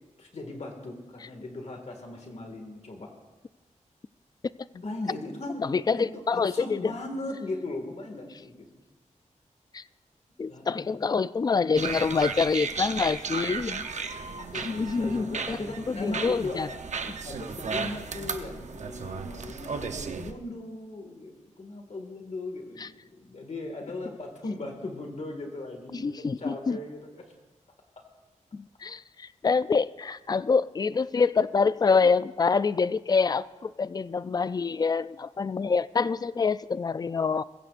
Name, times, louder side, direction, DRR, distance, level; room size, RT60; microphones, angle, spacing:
voice 1, 0.2-3.1 4.7-5.6 5.9-8.7 10.4-11.1 14.4-16.7 17.3-27.2 28.0-28.1, left 2 dB, 60° left, 2 dB, 2.0 m, -38 dB
voice 2, 5.6-6.9 9.7-9.8 10.4-13.9 14.6-15.6 15.9-16.7 22.8-22.9 25.9-26.8 28.5-37.4, left 5 dB, 30° left, 16 dB, 0.3 m, -26 dB
sound 1, 11.7-20.3, right 5 dB, 65° right, 0.8 m, -35 dB
22.0 x 16.0 x 2.5 m, 1.2 s
wide cardioid pair, 130°, 13 cm